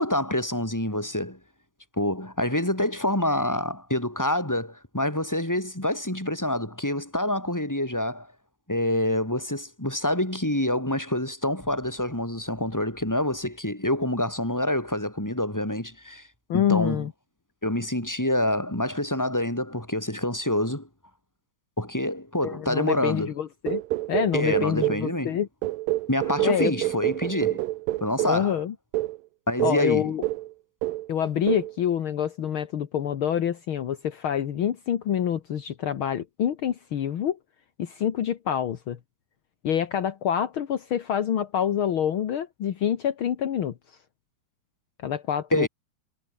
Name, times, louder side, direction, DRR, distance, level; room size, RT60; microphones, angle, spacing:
voice 1, 0.0-1.4 2.0-8.3 8.7-17.1 17.6-20.9 21.8-23.3 24.3-25.4 26.1-27.6 28.0-28.6 29.5-30.1 45.5-45.7, left 1 dB, 5° left, 4.8 m, -27 dB
voice 2, 16.5-17.1 22.4-23.8 24.1-25.5 26.4-26.7 28.2-28.7 29.6-30.2 31.1-37.4 37.8-39.0 39.6-43.7 45.0-45.7, left 9 dB, 65° left, 1.3 m, -26 dB
sound 1, 23.7-25.1 25.6-28.4 28.9-29.2 29.6-29.9 30.2-30.5 30.8-31.1 31.5-31.7, right 18 dB, 80° right, 2.2 m, -27 dB
omnidirectional pair, 4.3 m